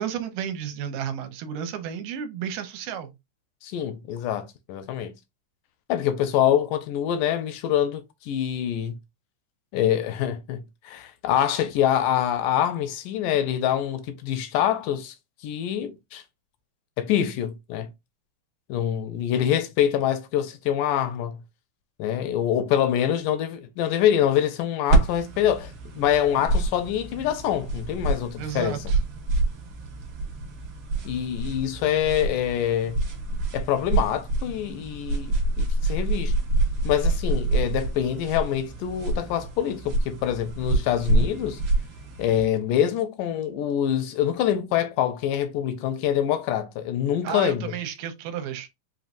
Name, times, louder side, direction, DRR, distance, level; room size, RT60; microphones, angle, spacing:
voice 1, 0.0-3.1 28.4-29.0 47.2-48.7, right 8 dB, 80° right, 2.2 m, -32 dB
voice 2, 3.6-5.1 5.9-9.0 9.7-15.1 15.4-16.2 17.0-17.9 18.7-21.4 22.0-28.8 31.1-33.0 33.5-36.4 36.8-41.6 42.2-47.7, left 10 dB, 80° left, 2.0 m, -25 dB
sound 1, 24.9-42.5, right 2 dB, 55° right, 1.6 m, -27 dB
5.5 x 3.0 x 2.5 m
omnidirectional pair, 4.0 m